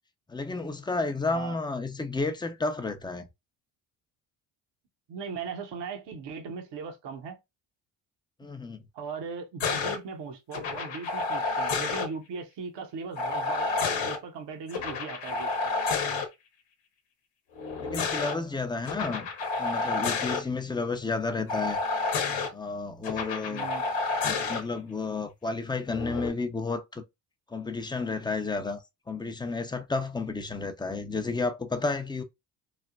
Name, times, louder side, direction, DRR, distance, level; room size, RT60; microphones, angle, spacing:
voice 1, 0.3-3.3 8.4-8.8 17.8-19.3 19.6-21.8 22.5-23.7 24.3-27.0 27.5-28.8 29.1-32.2, left 3 dB, 10° left, 0.6 m, -31 dB
voice 2, 1.3-1.6 5.1-7.4 8.9-15.5 23.5-23.8, right 5 dB, 60° right, 1.0 m, -38 dB
sound 1, 9.6-10.0 10.5-12.1 13.2-14.2 14.7-16.3 17.6-18.3 18.9-20.4 21.5-22.5 23.0-24.6 25.9-26.3, left 4 dB, 65° left, 1.0 m, -30 dB
3.3 x 2.1 x 2.4 m
hypercardioid pair, 55°, 48 cm